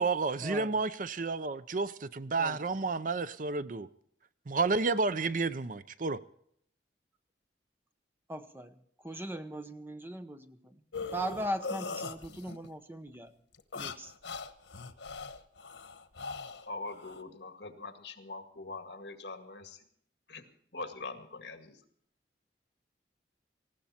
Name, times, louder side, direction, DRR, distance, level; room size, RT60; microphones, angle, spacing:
voice 1, 0.0-3.9 4.5-6.2, right 4 dB, 45° right, 0.6 m, -31 dB
voice 2, 8.3-10.8 11.1-13.4 13.7-14.1, right 1 dB, 10° right, 0.9 m, -39 dB
sound 1, 10.9-12.7 13.5-17.2, left 4 dB, 85° left, 1.2 m, -41 dB
voice 3, 16.7-19.8 20.3-20.4 20.7-21.8, left 3 dB, 65° left, 2.1 m, -43 dB
19.5 x 16.0 x 4.4 m
head